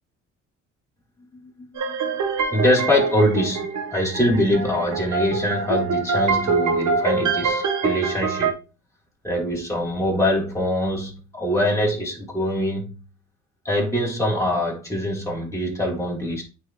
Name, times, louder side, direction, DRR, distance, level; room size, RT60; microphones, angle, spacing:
voice 1, 1.3-2.0 2.5-8.6 9.2-13.0 13.6-16.4, left 1 dB, 10° left, 3.4 m, -23 dB
sound 1, 1.8-8.5, right 5 dB, 70° right, 1.3 m, -24 dB
9.0 x 3.4 x 3.1 m
cardioid pair, 90°, 30 cm